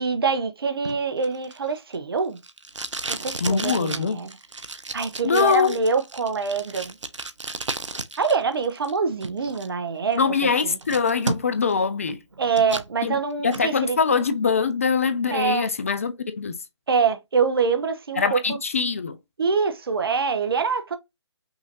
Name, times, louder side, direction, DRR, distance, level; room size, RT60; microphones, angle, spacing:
voice 1, 0.0-2.4 3.1-4.4 4.9-7.0 8.2-10.8 12.4-14.0 15.3-15.7 16.9-18.6 19.4-21.0, right 5 dB, 55° right, 1.0 m, -25 dB
Packing tape duct tape, 0.8-8.4 8.6-9.7 10.1-10.2 10.6-11.7 12.1-12.9 13.3-13.7, right 3 dB, 85° right, 0.7 m, -33 dB
voice 2, 3.4-4.2 5.2-5.7 10.2-12.2 13.0-13.2 13.4-16.6 18.2-19.2, left 5 dB, 30° left, 0.4 m, -23 dB
5.7 x 2.7 x 2.7 m
figure-of-eight pair, 150°, 15 cm